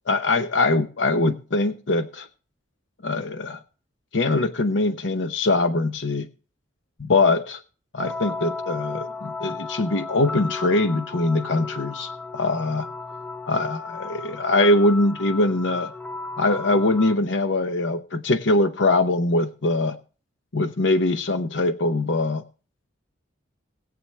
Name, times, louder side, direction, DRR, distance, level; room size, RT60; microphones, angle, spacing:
voice 1, 0.1-2.3 3.0-3.6 4.1-6.3 7.0-7.6 7.9-12.9 13.5-15.9 16.4-20.0 20.5-22.4, left 2 dB, 70° left, 8 dB, 0.8 m, -22 dB
sound 1, 8.0-17.2, left 3 dB, 5° left, 0.5 m, -35 dB
20.5 x 7.8 x 3.3 m, 0.38 s
head